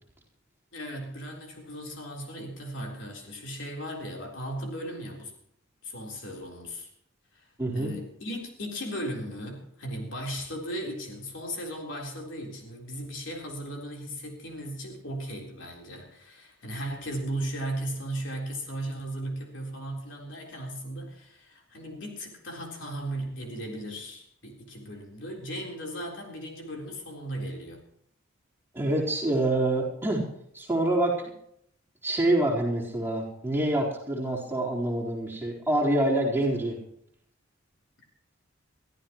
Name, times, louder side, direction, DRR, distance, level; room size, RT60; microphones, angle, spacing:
voice 1, 0.7-5.3 5.8-6.9 7.3-7.5 7.7-27.8, right 1 dB, 65° left, 0 dB, 4.0 m, -36 dB
voice 2, 7.6-7.9 28.7-30.2 30.5-31.3 32.0-36.8, right 1 dB, 10° right, -5 dB, 4.1 m, -26 dB
23.0 x 14.0 x 3.1 m, 0.70 s
head